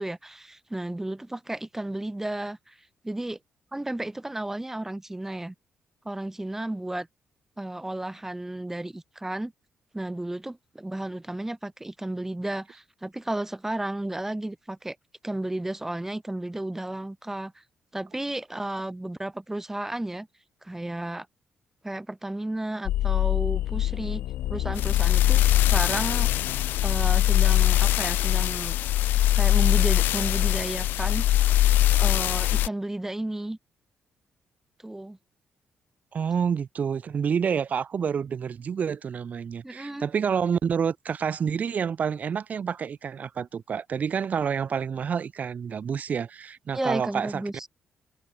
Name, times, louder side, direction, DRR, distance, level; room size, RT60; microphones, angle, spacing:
voice 1, 0.0-2.8 3.0-3.4 3.7-5.5 6.0-7.1 7.6-9.5 9.9-15.0 15.2-17.5 17.9-20.3 20.6-21.3 21.8-24.2 24.5-26.4 26.8-28.8 29.3-31.3 32.0-33.6 34.8-35.2 39.6-40.1 46.7-47.7, right 1 dB, 10° right, 5.8 m, -33 dB
sound 1, 22.9-32.7, left 14 dB, 85° left, 2.8 m, -22 dB
voice 2, 36.1-47.4, right 7 dB, 55° right, 4.4 m, -28 dB
cardioid pair, 75°, 3 cm